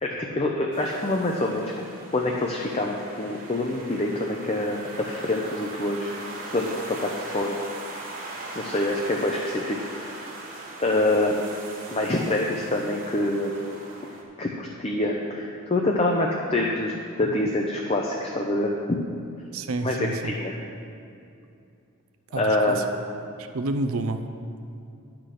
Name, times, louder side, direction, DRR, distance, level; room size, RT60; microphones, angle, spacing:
voice 1, 0.0-1.7 2.1-6.2 6.5-7.6 8.5-10.2 10.8-11.4 11.9-13.5 14.4-19.0 19.8-20.6 22.4-22.8, left 1 dB, 30° left, 0 dB, 0.6 m, -26 dB
sound 1, 0.7-14.2, right 2 dB, 40° right, 1.5 m, -40 dB
voice 2, 19.5-20.3 22.3-22.8 23.4-24.2, right 2 dB, 80° right, 7 dB, 0.6 m, -29 dB
9.9 x 6.0 x 6.4 m, 2.6 s
head